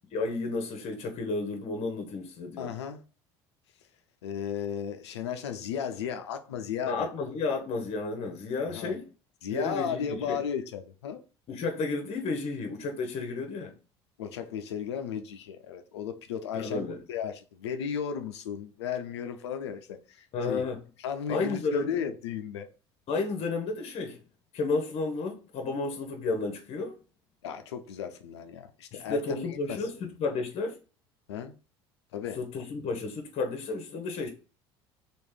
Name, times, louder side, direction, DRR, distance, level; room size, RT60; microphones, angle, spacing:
voice 1, 0.1-2.7 6.9-9.0 9.5-10.4 11.5-13.7 16.5-17.0 20.3-20.8 21.3-21.9 23.1-24.2 24.5-27.0 28.9-30.8 32.4-34.3, left 3 dB, 45° left, 0.9 m, -32 dB
voice 2, 2.6-3.0 4.2-7.1 8.6-8.9 9.4-11.2 14.2-20.6 21.0-22.7 27.4-29.9 31.3-31.5 32.1-32.4, left 8 dB, 80° left, 0.5 m, -35 dB
3.1 x 2.5 x 3.7 m
hypercardioid pair, 65°, 14 cm